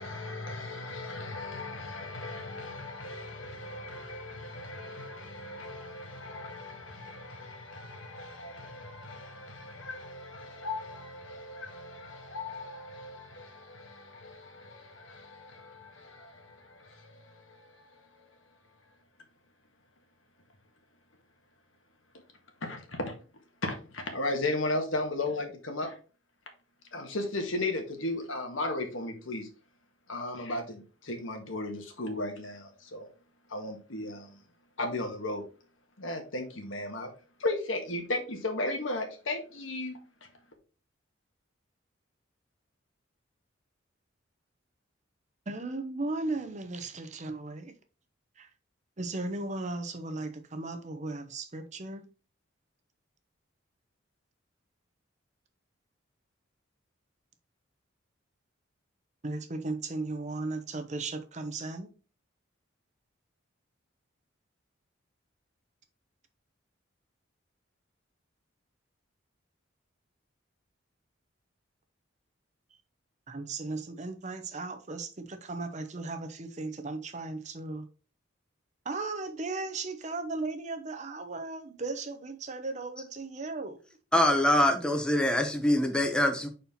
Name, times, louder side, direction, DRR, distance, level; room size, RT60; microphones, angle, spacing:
voice 1, 0.0-18.4 22.6-23.1 23.6-26.0 26.9-29.5 30.1-33.1 33.5-34.4 34.8-35.4 36.0-37.1 37.4-40.3, left 2 dB, 80° left, 1.6 m, -36 dB
voice 2, 45.5-47.7 48.4-48.5 49.0-52.1 59.2-61.9 73.3-77.9 78.8-83.8, right 3 dB, 35° right, 0.7 m, -36 dB
voice 3, 84.1-86.5, left 1 dB, 5° left, 0.7 m, -24 dB
5.4 x 4.3 x 4.2 m
head